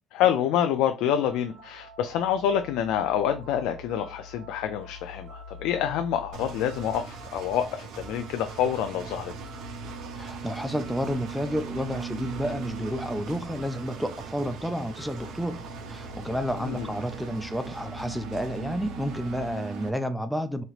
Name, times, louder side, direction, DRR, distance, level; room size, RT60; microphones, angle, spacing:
voice 1, 0.1-9.3 16.6-16.9, left 9 dB, 85° left, 0.3 m, -27 dB
sound 1, 1.2-19.5, left 3 dB, 85° right, 0.9 m, -45 dB
Engine, 6.3-19.9, right 6 dB, 65° right, 0.5 m, -40 dB
voice 2, 10.2-15.6 15.9-20.6, equal, ahead, 0.3 m, -31 dB
3.0 x 2.8 x 2.4 m
cardioid pair, 150°, 0 cm